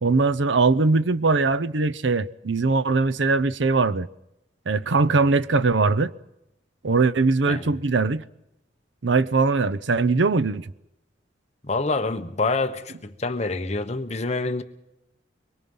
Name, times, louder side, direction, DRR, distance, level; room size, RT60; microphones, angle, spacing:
voice 1, 0.0-4.1 4.7-6.1 6.8-8.2 9.0-10.7, right 3 dB, 80° right, 0.7 m, -21 dB
voice 2, 11.6-14.6, left 3 dB, 40° left, 1.1 m, -26 dB
24.0 x 23.0 x 5.5 m
head